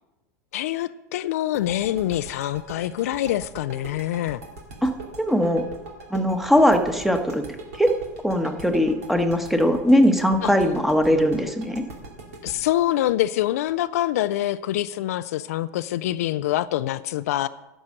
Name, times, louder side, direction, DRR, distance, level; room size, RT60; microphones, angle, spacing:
voice 1, 0.5-4.4 10.4-10.5 12.4-17.5, left 13 dB, 70° left, 14 dB, 0.4 m, -25 dB
sound 1, 1.5-14.3, right 3 dB, 75° right, 2.7 m, -40 dB
voice 2, 5.2-5.6 6.1-7.4 7.8-7.9 8.2-11.8, equal, ahead, 6 dB, 1.2 m, -20 dB
10.5 x 6.2 x 6.6 m, 1.0 s
hypercardioid pair, 85°, 8 cm